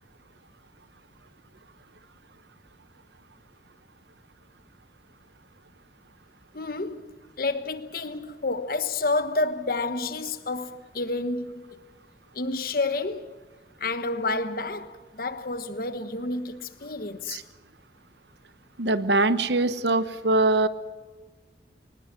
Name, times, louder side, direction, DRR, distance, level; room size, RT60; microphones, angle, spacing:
voice 1, 6.5-11.7 12.3-13.3 13.8-17.4, left 3 dB, 55° left, 1.2 m, -30 dB
voice 2, 18.8-20.7, right 2 dB, 70° right, 1.0 m, -22 dB
22.5 x 20.0 x 7.6 m
head